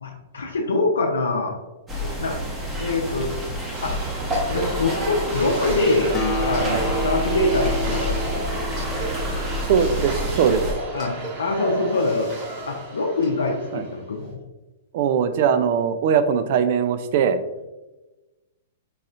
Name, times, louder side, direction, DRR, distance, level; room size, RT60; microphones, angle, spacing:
voice 1, 0.0-1.5 2.0-2.4 2.8-3.3 3.8-3.9 4.5-6.2 6.5-8.5 10.9-12.3 12.6-14.4, left 2 dB, 85° left, -1 dB, 0.6 m, -24 dB
sound 1, 1.9-10.7, left 1 dB, 15° right, 0.9 m, -28 dB
sound 2, 3.7-14.1, right 2 dB, 40° right, 1.5 m, -32 dB
Acoustic guitar, 6.1-9.9, equal, 20° left, 1.0 m, -30 dB
voice 2, 9.7-10.7 13.7-13.8 14.9-17.4, right 7 dB, 55° right, 10 dB, 0.4 m, -20 dB
4.1 x 3.9 x 2.5 m, 1.1 s
hypercardioid pair, 120°, 0 cm